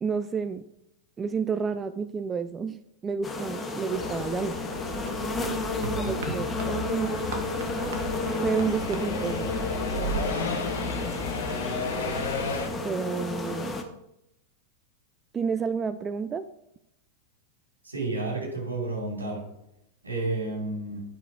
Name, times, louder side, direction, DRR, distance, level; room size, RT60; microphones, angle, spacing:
voice 1, 0.0-0.6 1.2-4.6 6.0-7.1 8.4-9.6 12.8-13.8 15.3-16.4, right 6 dB, 20° right, 12 dB, 0.4 m, -30 dB
sound 1, 3.2-13.8, left 2 dB, 15° left, 1.2 m, -32 dB
sound 2, 3.9-12.7, left 4 dB, 65° left, 1.5 m, -34 dB
sound 3, 4.9-10.3, right 5 dB, 55° right, 1.5 m, -38 dB
voice 2, 17.8-19.4 20.0-21.0, right 2 dB, 75° right, -1 dB, 2.9 m, -31 dB
10.5 x 4.8 x 4.6 m, 0.82 s
figure-of-eight pair, 90°, 0 cm